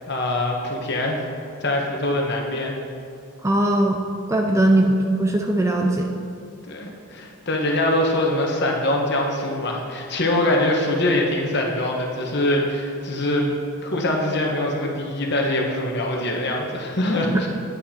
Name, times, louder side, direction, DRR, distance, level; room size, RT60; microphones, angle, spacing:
voice 1, 0.1-1.2 1.6-2.7 4.4-4.7 6.7-13.5 13.8-17.5, left 1 dB, 50° left, 0 dB, 1.4 m, -23 dB
voice 2, 3.4-4.0 4.3-4.9 5.2-6.1, right 1 dB, 15° right, 2 dB, 0.5 m, -19 dB
9.7 x 8.7 x 4.4 m, 2.5 s
head